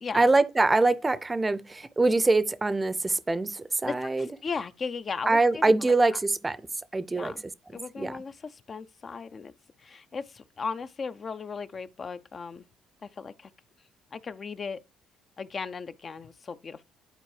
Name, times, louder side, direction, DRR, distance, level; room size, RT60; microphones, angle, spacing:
voice 1, 0.1-4.3 5.3-6.6 6.9-7.3 8.0-8.2, right 2 dB, 20° right, 0.6 m, -24 dB
voice 2, 3.8-5.9 7.1-7.4 7.7-9.5 9.8-12.6 13.2-13.5 14.1-14.8 15.4-16.8, left 5 dB, 40° left, 0.6 m, -37 dB
11.5 x 4.4 x 3.3 m
hypercardioid pair, 50°, 0 cm